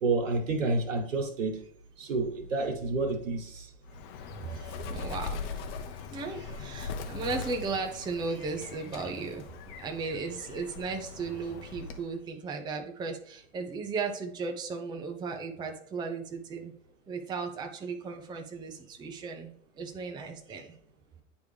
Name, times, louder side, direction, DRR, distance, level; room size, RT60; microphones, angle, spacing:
voice 1, 0.0-1.6 2.0-3.7, right 3 dB, 80° right, 3 dB, 1.6 m, -29 dB
Bird, 3.9-12.2, left 5 dB, 45° left, 0.9 m, -40 dB
voice 2, 4.2-5.6 6.1-16.7 17.1-20.7, right 4 dB, 10° right, 4 dB, 0.6 m, -36 dB
9.1 x 3.3 x 3.4 m, 0.62 s
hypercardioid pair, 110°, 38 cm